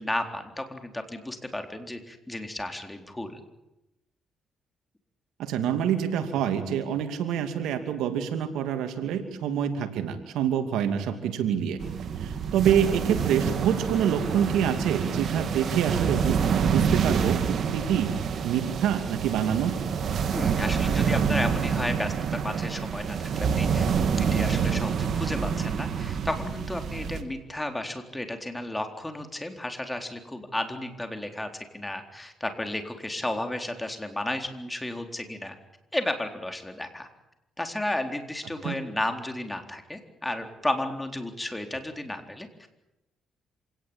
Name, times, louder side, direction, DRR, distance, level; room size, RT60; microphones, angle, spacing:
voice 1, 0.0-3.4 20.3-35.6 35.9-37.1 37.6-42.7, left 1 dB, 10° left, 5 dB, 4.0 m, -33 dB
voice 2, 5.4-11.8 12.2-17.4 17.7-19.8 38.6-38.8, right 9 dB, 90° right, 8 dB, 2.6 m, -26 dB
sound 1, 11.8-27.2, right 6 dB, 60° right, 2.5 m, -27 dB
27.0 x 18.5 x 8.9 m, 0.92 s
cardioid pair, 90°, 0 cm